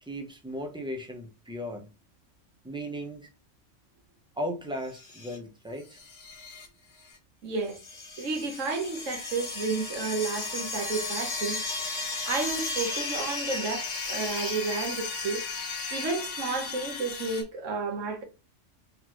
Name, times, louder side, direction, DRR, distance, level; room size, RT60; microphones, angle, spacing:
voice 1, 0.0-1.9 2.6-3.3 4.4-6.0, equal, 5° right, 0.4 m, -36 dB
sound 1, 4.9-5.4 5.9-6.7 7.0-7.2 7.7-17.4, left 3 dB, 75° left, 1.4 m, -35 dB
voice 2, 7.4-7.8 8.2-11.6 12.3-15.4 15.9-18.2, right 4 dB, 90° right, 1.4 m, -31 dB
3.9 x 3.2 x 2.9 m
omnidirectional pair, 1.3 m